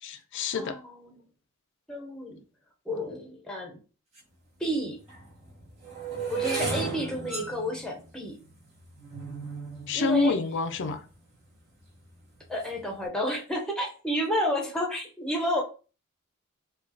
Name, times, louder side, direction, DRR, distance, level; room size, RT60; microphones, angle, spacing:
voice 1, 0.0-0.8 9.9-11.0, left 3 dB, 60° left, 0.4 m, -27 dB
voice 2, 0.6-1.2 1.9-2.4 2.9-3.8 4.6-5.0 6.3-8.4 9.9-10.4 12.5-15.6, equal, 5° left, 0.7 m, -31 dB
sound 1, 4.2-4.3 5.0-11.2 11.8-12.2 12.5-12.8, right 5 dB, 30° right, 1.6 m, -35 dB
4.9 x 2.3 x 2.7 m
head